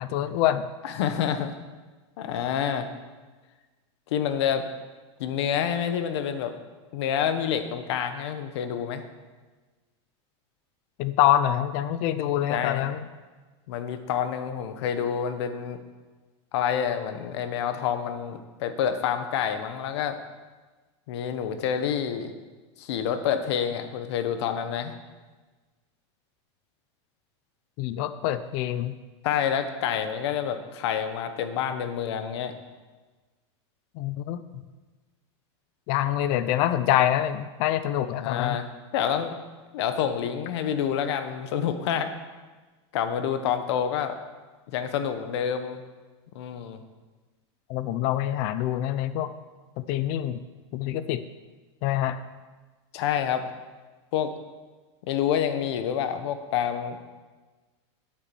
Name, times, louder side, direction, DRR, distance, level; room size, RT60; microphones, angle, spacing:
voice 1, 0.0-0.7 11.0-13.0 27.8-29.0 33.9-34.6 35.9-38.6 47.7-49.3 49.8-50.4 50.7-51.2 51.8-52.2, left 12 dB, 45° left, 12 dB, 0.5 m, -25 dB
voice 2, 0.8-1.6 2.2-2.9 4.1-4.7 5.2-6.5 6.9-9.1 12.5-12.8 13.7-15.8 16.5-20.2 21.1-22.3 22.8-24.9 29.2-32.5 38.2-38.6 38.9-39.4 39.7-42.1 42.9-44.2 44.7-45.8 46.3-46.8 52.9-53.4 54.1-54.3 55.1-57.0, left 8 dB, 70° left, 9 dB, 1.2 m, -28 dB
9.3 x 7.3 x 7.1 m, 1.3 s
supercardioid pair, 155°, 15 cm